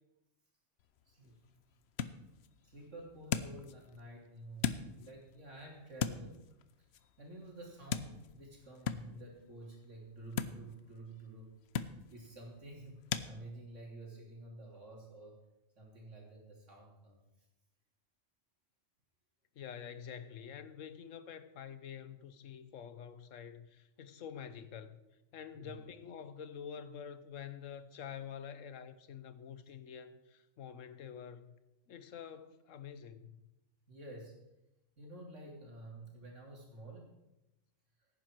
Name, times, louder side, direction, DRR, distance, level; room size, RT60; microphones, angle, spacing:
sound 1, 0.8-13.3, left 7 dB, 65° left, 0.9 m, -42 dB
voice 1, 1.1-1.4 2.6-6.4 6.8-6.9 7.2-11.5 12.1-15.4 15.8-17.2 25.5-25.8 33.9-34.4 35.0-37.2 38.0-38.1, right 2 dB, 75° right, 3.5 m, -50 dB
voice 2, 19.6-25.0 25.3-31.5 31.9-33.5, left 8 dB, 90° left, 1.2 m, -47 dB
16.5 x 9.7 x 4.5 m
omnidirectional pair, 1.3 m